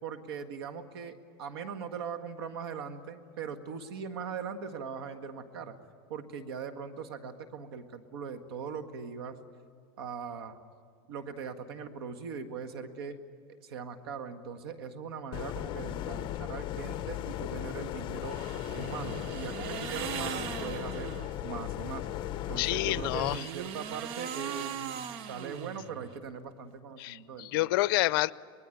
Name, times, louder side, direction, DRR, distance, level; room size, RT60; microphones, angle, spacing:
voice 1, 0.0-5.8 6.1-9.4 10.0-10.6 11.1-13.2 13.6-18.4 18.7-21.1 21.4-22.1 22.5-27.7, right 6 dB, 85° right, 7 dB, 1.8 m, -40 dB
sound 1, 15.3-23.4, left 12 dB, 40° left, 0.9 m, -37 dB
sound 2, 18.2-21.4 22.8-26.2, right 9 dB, 50° right, 1.0 m, -39 dB
voice 2, 22.6-23.4 27.0-28.3, left 19 dB, 70° left, 19 dB, 0.6 m, -28 dB
24.0 x 20.5 x 9.2 m, 2.1 s
supercardioid pair, 135°, 12 cm